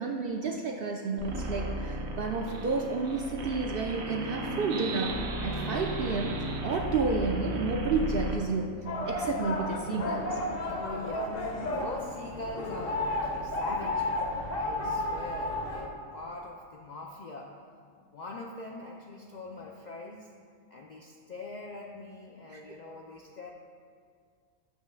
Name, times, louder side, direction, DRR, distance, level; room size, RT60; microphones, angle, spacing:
voice 1, 0.0-6.3 6.6-8.8 9.1-10.4 22.5-22.6, right 4 dB, 65° right, 2 dB, 0.6 m, -31 dB
sound 1, 1.2-8.4, right 2 dB, 85° right, 1.3 m, -35 dB
sound 2, 8.9-15.9, left 2 dB, 50° left, 0.8 m, -32 dB
voice 2, 10.7-14.1 14.5-17.6 18.1-20.3 20.7-23.5, left 2 dB, 80° left, 0 dB, 0.4 m, -42 dB
8.2 x 3.1 x 6.1 m, 2.1 s
omnidirectional pair, 1.4 m